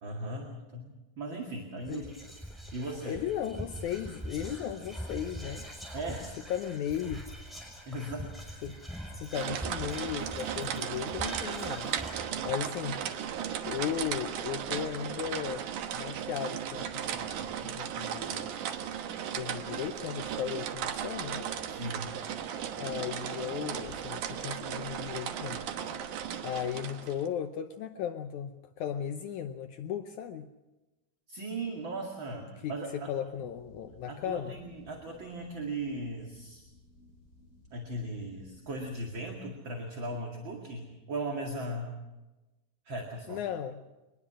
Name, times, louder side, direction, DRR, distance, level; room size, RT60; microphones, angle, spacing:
voice 1, 0.0-2.2 2.7-3.2 5.9-6.3 7.9-8.5 21.7-22.1 31.3-33.1 34.1-36.6 37.7-42.0 42.8-43.4, right 2 dB, 40° right, 1 dB, 2.6 m, -38 dB
Whispering, 1.8-14.3, equal, ahead, 5.6 m, -43 dB
voice 2, 3.1-5.7 6.5-7.3 8.6-8.8 9.1-12.0 12.4-13.1 13.7-18.5 19.3-21.5 22.8-25.6 26.4-30.5 32.6-32.8 33.1-34.5 43.3-43.8, left 9 dB, 75° left, 8 dB, 2.0 m, -36 dB
sound 1, 9.3-27.3, right 9 dB, 70° right, 2.7 m, -36 dB
sound 2, 33.3-39.2, left 1 dB, 25° left, 8.4 m, -58 dB
23.5 x 20.5 x 6.2 m, 1.1 s
omnidirectional pair, 3.8 m